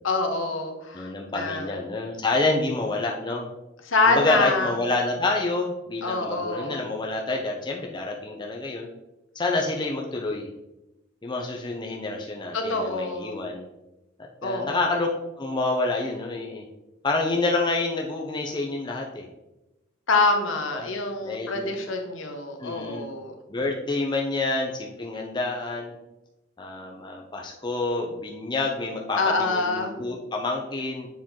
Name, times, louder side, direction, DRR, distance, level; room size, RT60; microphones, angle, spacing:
voice 1, 0.0-1.7 3.9-4.7 6.0-6.8 12.5-13.4 14.4-14.9 20.1-23.3 29.2-29.9, left 3 dB, 75° left, 4 dB, 1.0 m, -26 dB
voice 2, 0.9-3.5 4.1-8.9 9.3-10.5 11.2-13.6 14.2-15.1 15.4-16.6 17.0-19.3 20.7-20.9 21.2-21.8 22.6-23.1 23.5-25.9 26.6-31.1, left 2 dB, 20° left, 0 dB, 0.6 m, -28 dB
7.3 x 4.5 x 3.7 m, 0.95 s
head